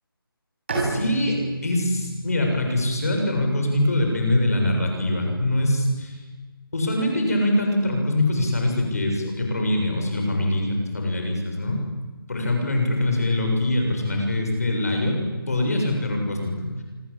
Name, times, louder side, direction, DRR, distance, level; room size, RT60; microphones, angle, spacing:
Bowed string instrument, 0.7-4.3, right 2 dB, 30° right, 7.4 m, -32 dB
voice 1, 0.8-6.2 6.7-11.8 12.3-15.2 15.5-16.7, left 1 dB, 40° left, 2 dB, 6.9 m, -23 dB
26.0 x 25.0 x 8.7 m, 1.3 s
figure-of-eight pair, 180°, 12 cm